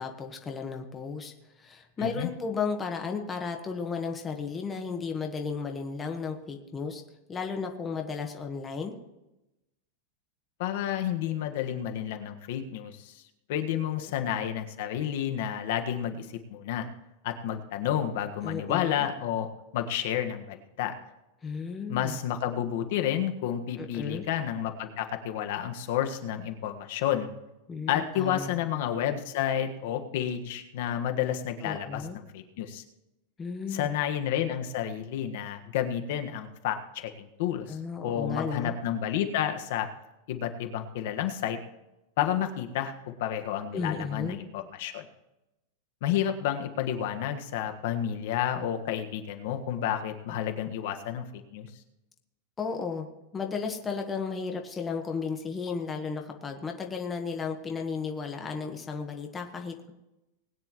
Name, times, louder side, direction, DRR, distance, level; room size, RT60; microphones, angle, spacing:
voice 1, 0.0-7.0 7.3-8.9 13.7-14.1 18.4-19.1 21.4-22.2 23.8-24.2 27.7-28.6 31.6-32.2 33.4-33.9 37.7-38.7 43.7-44.4 52.6-53.1 53.3-59.9, left 5 dB, 15° left, 3 dB, 1.3 m, -34 dB
voice 2, 2.0-2.3 10.6-13.2 13.5-16.9 17.2-19.5 19.7-20.9 21.9-27.3 27.9-32.0 32.3-32.8 33.7-39.9 40.3-41.6 42.2-45.1 46.0-51.2 51.5-51.7, left 10 dB, 55° left, 6 dB, 1.5 m, -30 dB
20.0 x 9.8 x 3.1 m, 0.93 s
supercardioid pair, 165°, 0 cm